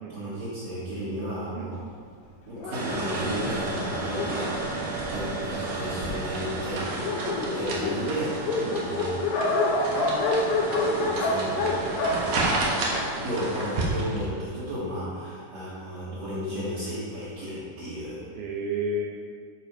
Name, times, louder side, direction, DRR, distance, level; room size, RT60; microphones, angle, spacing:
voice 1, 0.1-1.8 2.5-4.5 5.1-9.3 10.9-11.9 12.2-12.4 13.1-18.2, equal, 45° right, -12 dB, 3.0 m, -34 dB
Dog, 2.6-5.5 6.2-6.3 6.6-6.7 6.9-13.3, left 2 dB, 75° left, 2.3 m, -28 dB
sound 1, 2.7-14.2, right 2 dB, 70° right, 1.5 m, -31 dB
voice 2, 18.4-19.1, right 1 dB, 90° right, -1 dB, 1.8 m, -32 dB
12.0 x 5.1 x 4.6 m, 2.1 s
omnidirectional pair, 4.9 m